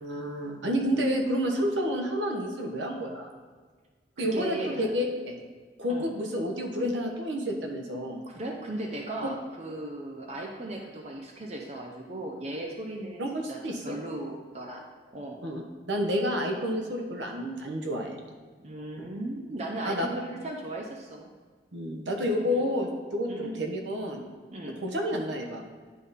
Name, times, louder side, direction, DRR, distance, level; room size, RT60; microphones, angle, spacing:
voice 1, 0.0-3.3 4.2-5.4 5.8-8.2 13.2-14.0 15.4-15.6 15.9-18.2 19.0-19.1 19.8-20.1 21.7-24.2 24.8-25.6, equal, 85° right, 2 dB, 1.0 m, -30 dB
voice 2, 4.2-4.9 5.9-6.1 8.3-13.2 13.5-14.8 15.1-15.4 18.6-21.3 22.4-22.6 23.3-23.5 24.5-24.8, right 1 dB, 35° right, 1 dB, 0.6 m, -37 dB
10.0 x 3.7 x 4.1 m, 1.5 s
head